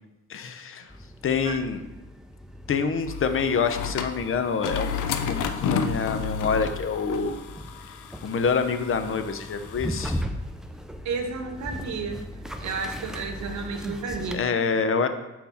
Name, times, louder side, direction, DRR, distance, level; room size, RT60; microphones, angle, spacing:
voice 1, 0.3-0.9 1.2-1.8 2.7-7.4 8.2-10.2 14.3-15.1, left 5 dB, 45° left, 8 dB, 0.6 m, -26 dB
sound 1, 0.9-14.4, equal, ahead, 0.4 m, -38 dB
sound 2, 3.1-10.2, left 6 dB, 85° left, 0.6 m, -32 dB
voice 2, 11.0-12.3 12.6-14.4, right 4 dB, 70° right, 5 dB, 0.9 m, -32 dB
6.1 x 4.3 x 4.1 m, 1.0 s
cardioid pair, 90°, 30 cm